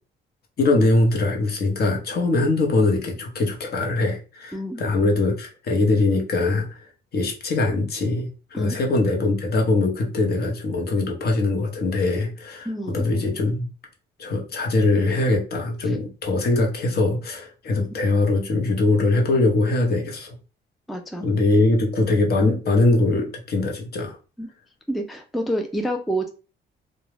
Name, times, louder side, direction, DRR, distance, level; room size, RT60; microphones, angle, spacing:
voice 1, 0.6-6.8 7.1-13.7 14.2-20.3 21.2-24.2, left 2 dB, 55° left, 2 dB, 0.7 m, -22 dB
voice 2, 12.7-13.1 17.8-17.9 20.9-21.3 24.4-24.5 24.9-26.3, right 1 dB, ahead, 5 dB, 0.3 m, -28 dB
2.2 x 2.0 x 3.1 m, 0.34 s
cardioid pair, 90°, 20 cm